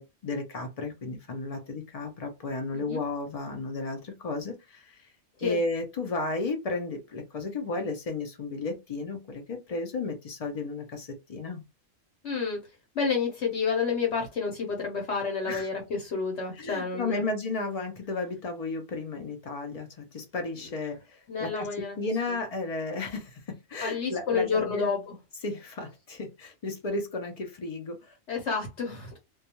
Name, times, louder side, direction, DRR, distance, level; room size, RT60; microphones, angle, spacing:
voice 1, 0.0-5.1 5.4-11.6 15.5-15.7 16.6-21.7 22.0-24.9 25.4-28.2, left 3 dB, 75° left, 0.3 m, -33 dB
voice 2, 12.2-12.6 12.9-17.2 20.7-20.8 21.3-22.0 23.8-25.2 28.3-29.2, left 5 dB, 60° left, 1.0 m, -30 dB
2.3 x 2.2 x 2.8 m
omnidirectional pair, 1.4 m